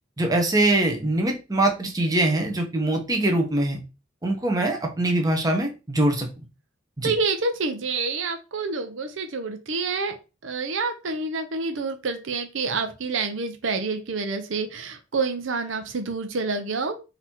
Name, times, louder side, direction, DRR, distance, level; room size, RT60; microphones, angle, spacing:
voice 1, 0.2-3.8 4.2-6.3 7.0-7.1, right 1 dB, 20° right, 2 dB, 1.0 m, -23 dB
voice 2, 7.0-10.2 10.4-17.0, right 4 dB, 75° right, 7 dB, 0.7 m, -28 dB
4.1 x 2.8 x 4.4 m, 0.30 s
head